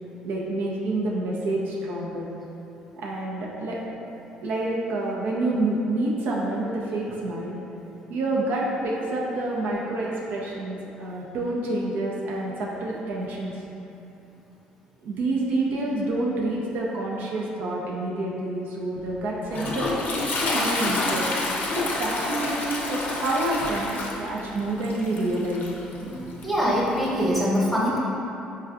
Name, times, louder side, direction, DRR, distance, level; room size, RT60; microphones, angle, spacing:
voice 1, 0.2-2.3 3.0-3.8 4.4-7.6 8.1-13.6 15.0-19.9 20.4-21.3 21.8-25.7, right 2 dB, 65° right, -3 dB, 0.4 m, -28 dB
Toilet flush, 19.0-27.3, left 2 dB, 50° left, 0.5 m, -29 dB
voice 2, 25.9-28.0, equal, ahead, -7 dB, 0.9 m, -24 dB
4.4 x 2.3 x 2.4 m, 2.8 s
hypercardioid pair, 55°, 4 cm